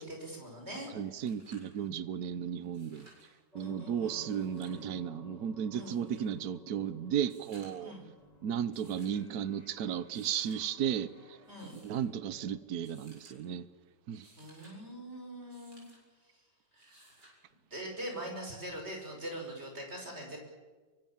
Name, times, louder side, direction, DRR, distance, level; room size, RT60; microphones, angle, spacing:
voice 1, 0.0-0.9 1.8-1.9 3.6-4.3 5.7-6.0 7.8-8.1 11.5-11.8 14.4-15.9 16.3-16.4 16.7-17.2 17.7-20.4, right 1 dB, 35° right, 6.1 m, -43 dB
sound 1, 0.7-0.8 1.0-1.7 2.6-3.3 4.2-4.9 5.8-6.3 7.2-7.9 8.7-9.2 10.0-10.6 11.4-12.0 12.8-13.4 14.0-14.8 15.5-16.0 16.8-17.4 18.8-18.9, right 1 dB, 80° right, 8.0 m, -60 dB
voice 2, 0.9-3.1 3.5-7.9 8.4-11.4 11.7-13.7 14.1-14.3, right 9 dB, 65° right, 1.4 m, -34 dB
sound 2, 3.5-12.6, left 1 dB, 25° left, 2.8 m, -56 dB
24.5 x 24.0 x 7.4 m
omnidirectional pair, 1.8 m